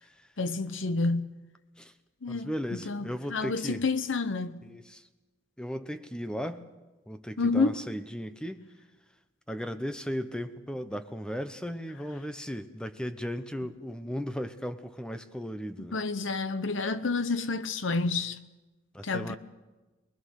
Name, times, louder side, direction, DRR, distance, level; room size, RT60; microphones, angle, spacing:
voice 1, 0.4-1.3 2.2-4.6 7.4-7.8 15.8-18.4 19.0-19.4, left 3 dB, 70° left, 0.9 m, -29 dB
voice 2, 2.3-3.8 4.6-5.0 5.6-6.7 7.1-8.6 9.5-16.0 18.9-19.4, equal, 5° left, 0.9 m, -36 dB
23.5 x 20.0 x 6.5 m
head